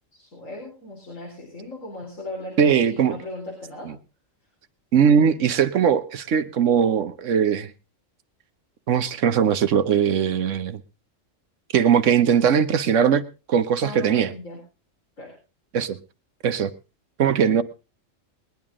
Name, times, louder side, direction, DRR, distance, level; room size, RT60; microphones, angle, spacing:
voice 1, 0.1-3.9 13.8-14.6 15.2-15.3, left 1 dB, 80° left, -2 dB, 4.6 m, -37 dB
voice 2, 2.6-3.2 3.8-4.0 4.9-7.7 8.9-10.8 11.7-13.2 13.5-14.3 15.7-16.0 16.4-16.7 17.2-17.6, right 7 dB, 70° right, 12 dB, 1.2 m, -20 dB
20.5 x 10.5 x 3.7 m, 0.32 s
omnidirectional pair, 1.3 m